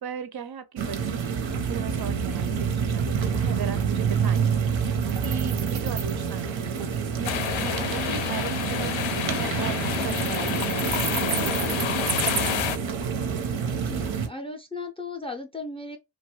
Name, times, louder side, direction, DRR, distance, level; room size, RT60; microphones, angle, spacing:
voice 1, 0.0-4.5 5.2-11.9, right 8 dB, 55° right, 0.5 m, -37 dB
sound 1, 0.8-14.3, right 6 dB, 85° right, 0.7 m, -27 dB
sound 2, 7.2-12.8, left 10 dB, 85° left, 0.5 m, -29 dB
voice 2, 13.7-16.0, left 3 dB, 15° left, 0.3 m, -36 dB
2.9 x 2.2 x 3.1 m
wide cardioid pair, 155°, 45 cm